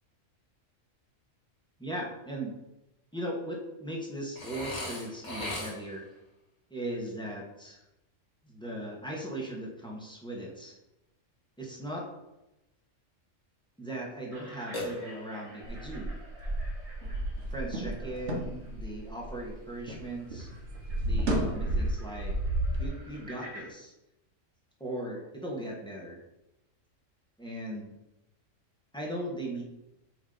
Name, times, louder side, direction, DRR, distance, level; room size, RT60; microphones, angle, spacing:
voice 1, 1.8-2.6 3.1-6.1 6.7-7.8 8.4-10.8 11.6-12.1 13.8-16.2 17.5-20.5 21.0-22.3 22.7-23.9 24.8-26.2 27.4-27.9 28.9-29.6, right 1 dB, 5° left, -3 dB, 1.2 m, -38 dB
Burping eructation, 4.4-6.1 14.7-15.5, left 1 dB, 35° left, 1.6 m, -37 dB
sound 1, 14.3-23.7, equal, 25° right, 1.6 m, -52 dB
sound 2, 15.6-20.0 20.3-22.8, right 1 dB, 60° right, 1.3 m, -32 dB
8.0 x 3.1 x 3.9 m, 0.92 s
omnidirectional pair, 1.4 m